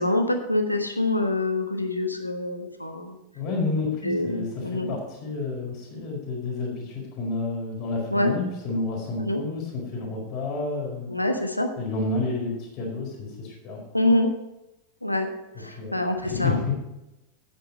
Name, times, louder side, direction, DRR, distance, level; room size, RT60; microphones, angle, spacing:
voice 1, 0.0-3.2 4.0-4.9 8.1-8.3 9.2-9.4 11.1-11.7 13.9-14.3 15.0-15.3 15.6-16.7, left 1 dB, 85° left, 6 dB, 1.3 m, -25 dB
voice 2, 3.3-11.1 11.8-13.8 15.7-16.7, left 3 dB, 40° left, -2 dB, 4.7 m, -30 dB
10.5 x 9.1 x 5.4 m, 0.94 s
figure-of-eight pair, 90°, 0 cm